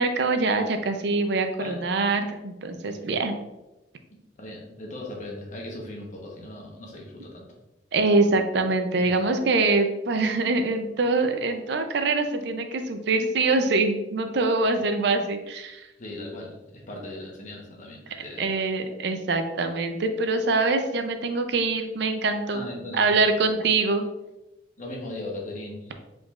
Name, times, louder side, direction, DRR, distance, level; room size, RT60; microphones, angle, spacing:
voice 1, 0.0-3.3 7.9-15.9 18.4-22.6 22.9-24.0, right 3 dB, 65° right, 7 dB, 0.5 m, -24 dB
voice 2, 4.1-7.6 9.0-9.2 14.8-14.9 16.0-18.5 22.5-23.1 24.8-26.0, left 1 dB, 40° left, -1 dB, 1.0 m, -38 dB
5.0 x 3.8 x 2.4 m, 1.0 s
head